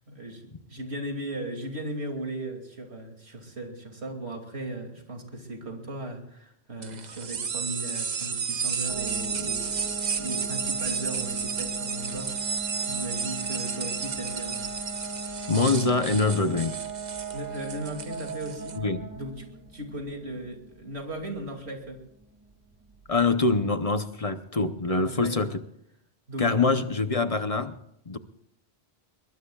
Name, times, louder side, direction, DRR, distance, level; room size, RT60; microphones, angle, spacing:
voice 1, 0.1-12.3 12.8-14.7 17.3-18.8 19.1-19.5 19.7-22.0 24.8-25.5 26.3-26.5, right 1 dB, 90° right, 3 dB, 2.8 m, -37 dB
sound 1, 6.8-18.8, right 6 dB, 45° right, 0.8 m, -32 dB
sound 2, 8.9-23.5, right 2 dB, 15° right, 2.5 m, -39 dB
voice 2, 15.5-16.8 18.8-19.0 23.1-25.6 26.4-27.7 28.1-28.2, left 3 dB, 40° left, 10 dB, 0.8 m, -24 dB
21.5 x 21.5 x 2.4 m, 0.74 s
omnidirectional pair, 1.1 m